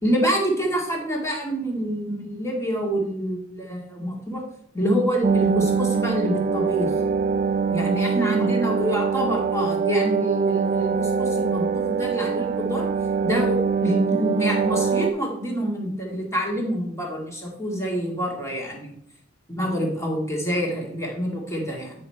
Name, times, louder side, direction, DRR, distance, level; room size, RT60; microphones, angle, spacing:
voice 1, 0.0-4.4 4.7-6.9 7.7-12.9 13.2-18.9 19.5-21.9, equal, 15° left, -1 dB, 2.0 m, -26 dB
sound 1, 5.2-15.1, right 6 dB, 40° right, 0.5 m, -23 dB
9.5 x 5.2 x 4.4 m, 0.71 s
head